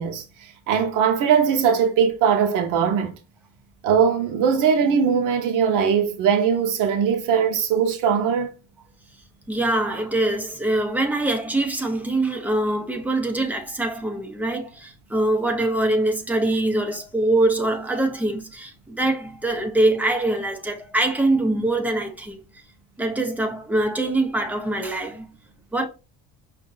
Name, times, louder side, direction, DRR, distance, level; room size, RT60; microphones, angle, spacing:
voice 1, 0.0-3.1 3.8-8.5, right 7 dB, 70° right, 0.9 m, -20 dB
voice 2, 9.5-22.4 23.0-25.3 25.7-25.9, right 2 dB, 5° right, 0.6 m, -23 dB
5.2 x 2.7 x 3.8 m
cardioid pair, 175°, 32 cm